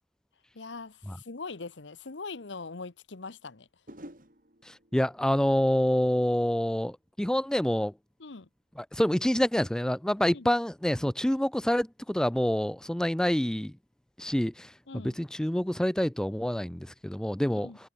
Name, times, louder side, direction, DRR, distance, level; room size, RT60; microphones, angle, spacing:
voice 1, 0.5-3.7 8.2-8.5 10.3-10.5 14.9-15.2 17.5-17.8, left 4 dB, 85° left, 1.1 m, -41 dB
sound 1, 2.4-2.5 3.9-7.0 7.3-7.7, right 1 dB, 50° right, 6.2 m, -53 dB
voice 2, 4.7-7.9 8.9-13.7 14.2-14.7 15.0-17.7, equal, 5° left, 0.3 m, -27 dB
head